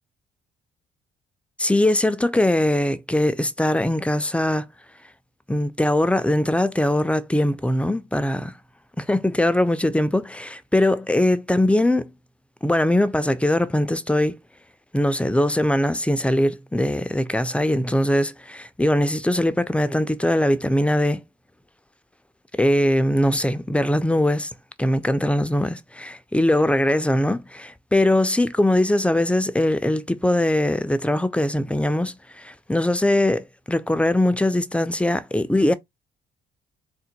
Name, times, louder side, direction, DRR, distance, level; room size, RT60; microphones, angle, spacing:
voice 1, 1.6-4.6 5.5-8.5 9.0-12.1 12.6-14.4 14.9-21.2 22.6-24.5 24.8-35.7, left 1 dB, 5° left, 0.5 m, -21 dB
3.7 x 2.2 x 4.4 m
cardioid pair, 90°, 20 cm